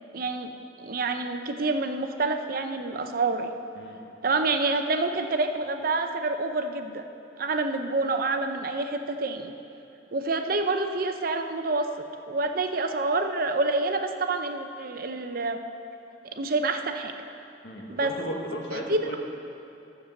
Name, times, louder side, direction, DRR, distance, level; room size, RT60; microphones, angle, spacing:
voice 1, 0.1-0.5 0.8-3.5 4.2-7.0 7.4-9.5 10.1-11.9 12.3-15.6 16.3-17.1 17.9-18.1 18.7-19.2, right 3 dB, 50° right, 6 dB, 0.7 m, -27 dB
voice 2, 17.6-19.2, equal, 70° left, 0 dB, 1.7 m, -35 dB
12.5 x 6.7 x 7.0 m, 2.8 s
head